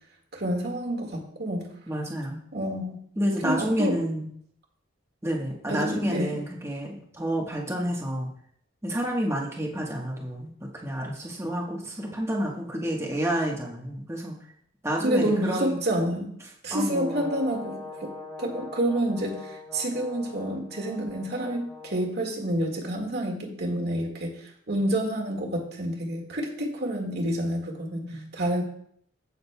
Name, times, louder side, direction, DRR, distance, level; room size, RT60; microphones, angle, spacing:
voice 1, 0.3-1.7 2.5-3.0 3.4-4.0 5.7-6.4 15.0-16.3 16.6-18.1 18.4-28.0 28.3-28.6, right 1 dB, 50° right, -1 dB, 1.8 m, -28 dB
voice 2, 1.9-2.4 3.2-4.3 5.2-8.3 8.8-14.4 14.8-15.8 16.7-17.3 27.9-28.3, equal, 15° right, -2 dB, 1.2 m, -29 dB
Brass instrument, 16.9-22.1, left 3 dB, 10° left, 2.6 m, -42 dB
15.0 x 6.5 x 2.2 m, 0.65 s
head